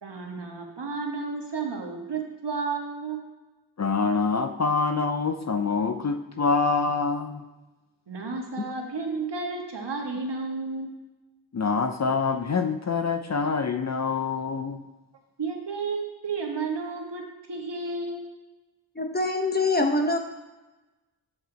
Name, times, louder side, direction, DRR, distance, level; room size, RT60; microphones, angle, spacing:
voice 1, 0.0-3.2 8.1-10.9 15.4-17.2 17.5-18.3, right 4 dB, 65° right, 1 dB, 1.6 m, -32 dB
voice 2, 3.8-7.4 8.6-8.8 11.5-14.8, left 4 dB, 40° left, 7 dB, 0.6 m, -26 dB
voice 3, 19.0-20.2, left 2 dB, 20° left, 4 dB, 0.9 m, -24 dB
8.0 x 6.9 x 4.0 m, 1.1 s
wide cardioid pair, 70°, 44 cm